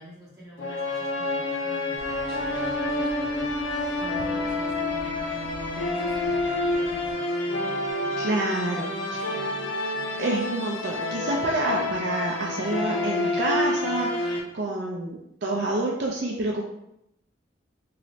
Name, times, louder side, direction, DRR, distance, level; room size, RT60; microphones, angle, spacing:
voice 1, 0.0-3.5 3.9-8.3 8.7-10.2, equal, 15° right, -10 dB, 1.5 m, -47 dB
sound 1, 0.6-14.4, left 2 dB, 90° left, 0.5 m, -28 dB
sound 2, 2.0-7.1, equal, 55° left, 1.3 m, -45 dB
voice 2, 8.2-9.2 10.2-16.6, right 2 dB, 60° right, -2 dB, 0.4 m, -28 dB
3.1 x 2.9 x 2.7 m, 0.82 s
head